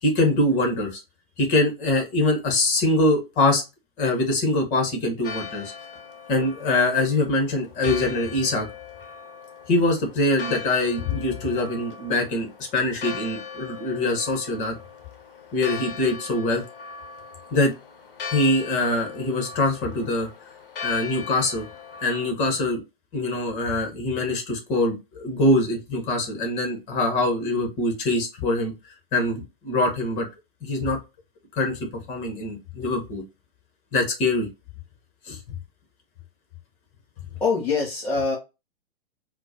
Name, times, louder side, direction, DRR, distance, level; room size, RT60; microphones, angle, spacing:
voice 1, 0.0-1.0 1.4-3.6 4.0-5.7 6.3-8.7 9.7-14.8 15.5-16.6 17.5-17.7 18.3-20.3 20.8-21.6 22.0-22.8 23.1-28.7 29.1-30.3 30.6-31.0 31.5-33.2 33.9-34.5 35.3-35.4, left 2 dB, 25° left, 3 dB, 1.1 m, -23 dB
Church bell, 5.2-22.3, left 5 dB, 65° left, 0.7 m, -39 dB
voice 2, 37.4-38.4, left 4 dB, 5° left, -5 dB, 0.4 m, -23 dB
4.3 x 2.2 x 2.7 m, 0.26 s
figure-of-eight pair, 110°, 30 cm